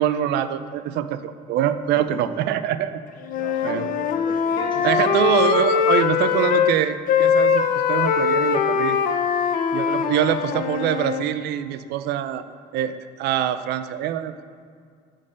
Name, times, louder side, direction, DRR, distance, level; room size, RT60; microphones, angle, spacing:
voice 1, 0.0-3.0 3.6-3.9 4.8-9.0 9.7-12.4 12.7-14.4, right 10 dB, 80° right, 12 dB, 0.4 m, -24 dB
voice 2, 1.9-2.4 3.3-5.1, left 1 dB, 30° left, -3 dB, 1.5 m, -37 dB
Wind instrument woodwind instrument, 3.2-6.7 7.1-11.3, left 7 dB, 55° left, 0.5 m, -21 dB
7.6 x 3.9 x 5.1 m, 2.2 s
cardioid pair, 110°, 17 cm